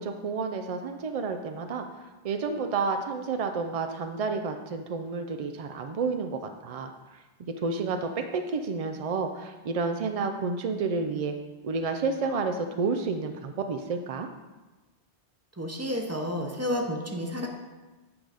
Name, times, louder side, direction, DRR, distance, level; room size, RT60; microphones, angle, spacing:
voice 1, 0.0-1.8 2.2-6.9 7.6-11.3 11.6-14.3, right 4 dB, 65° right, 6 dB, 0.3 m, -30 dB
voice 2, 15.6-17.5, equal, 15° right, 2 dB, 0.7 m, -30 dB
8.6 x 3.9 x 4.9 m, 1.2 s
omnidirectional pair, 1.1 m